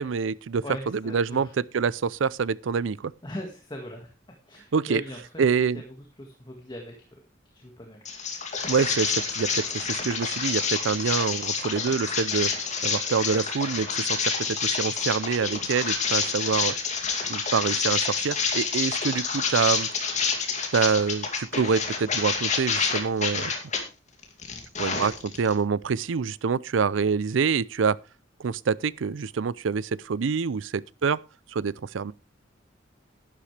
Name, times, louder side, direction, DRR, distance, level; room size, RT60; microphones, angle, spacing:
voice 1, 0.0-1.5 1.7-3.1 4.7-5.0 5.4-5.8 8.7-12.5 12.8-16.7 17.3-19.9 20.7-23.5 24.8-28.0 28.4-31.2 31.5-32.1, right 5 dB, 85° right, 0.5 m, -26 dB
voice 2, 0.6-1.5 3.2-4.1 4.5-5.4 5.7-5.8 6.2-7.2 7.5-8.0, equal, 25° left, 1.8 m, -39 dB
sound 1, 8.0-23.8 24.2-25.5, left 5 dB, 40° left, 2.5 m, -28 dB
11.5 x 11.5 x 3.3 m
head